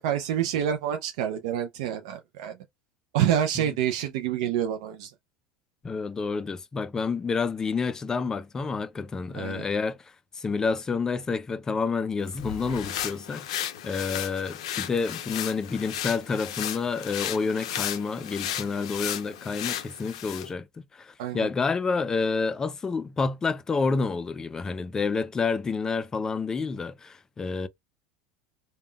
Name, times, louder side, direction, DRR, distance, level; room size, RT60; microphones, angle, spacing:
voice 1, 0.0-2.5 3.1-5.1 9.3-9.7 21.2-21.5, right 10 dB, 75° right, 0.4 m, -27 dB
voice 2, 5.8-10.0 10.3-13.5 13.8-20.7 20.9-27.7, left 4 dB, 20° left, 0.3 m, -29 dB
sound 1, 12.3-20.5, left 11 dB, 85° left, 0.4 m, -34 dB
3.5 x 2.1 x 2.2 m
supercardioid pair, 115°, 3 cm